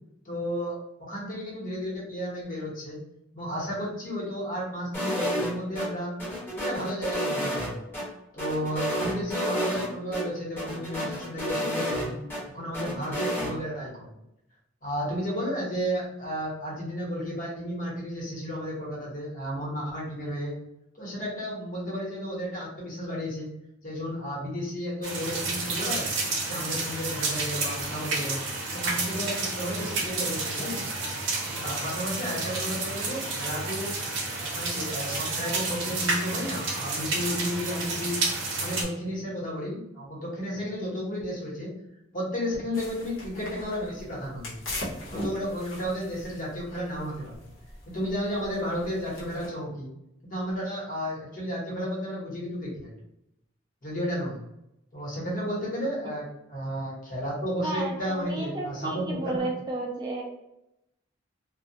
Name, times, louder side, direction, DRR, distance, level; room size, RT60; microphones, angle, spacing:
voice 1, 0.2-0.7 1.0-3.0 3.3-6.1 6.5-7.8 8.3-12.2 12.5-14.1 14.8-20.5 21.0-23.5 23.8-26.1 26.4-28.4 28.7-30.8 31.6-33.9 34.5-38.2 38.5-41.7 42.1-44.6 45.1-47.3 47.9-49.9 50.2-52.9 53.8-54.4 54.9-56.2 56.5-59.5, equal, 45° left, -5 dB, 0.9 m, -33 dB
sound 1, 4.9-5.9 6.2-8.0 8.4-9.9 10.1-10.2 10.6-12.4 12.7-13.5, equal, 10° left, 0.8 m, -30 dB
sound 2, 25.0-38.8, right 3 dB, 65° right, 0.6 m, -30 dB
sound 3, 42.7-49.5, left 1 dB, 80° left, 0.8 m, -40 dB
voice 2, 57.6-60.2, right 2 dB, 20° right, -1 dB, 0.3 m, -32 dB
2.2 x 2.1 x 2.7 m, 0.85 s
head